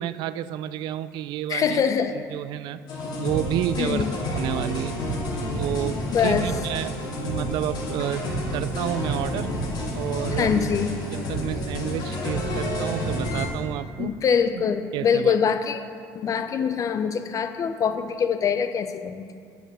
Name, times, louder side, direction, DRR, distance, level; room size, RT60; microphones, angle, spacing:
voice 1, 0.0-1.8 2.3-2.8 3.2-4.0 4.3-5.0 5.6-9.6 9.9-10.7 11.1-14.1 14.9-15.5, right 12 dB, 70° right, 15 dB, 0.4 m, -30 dB
voice 2, 1.5-2.2 3.8-4.1 6.1-6.5 10.4-10.9 14.0-15.8 16.1-19.2, left 7 dB, 45° left, 9 dB, 0.7 m, -24 dB
sound 1, 2.9-13.5, equal, 65° left, 2.2 m, -29 dB
7.9 x 7.0 x 6.7 m, 2.2 s
supercardioid pair, 90°, 8 cm